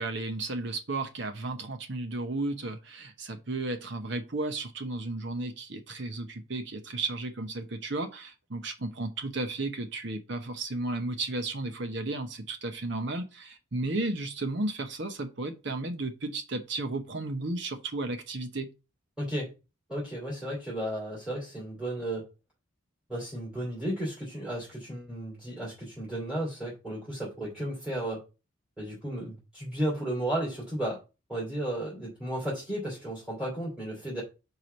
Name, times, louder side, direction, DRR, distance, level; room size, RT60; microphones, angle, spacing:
voice 1, 0.0-18.7, right 2 dB, 55° right, 0.9 m, -34 dB
voice 2, 19.2-19.5 19.9-22.3 23.1-28.2 28.8-31.0 31.3-34.2, right 1 dB, 5° right, 2.6 m, -34 dB
4.9 x 4.6 x 5.2 m
head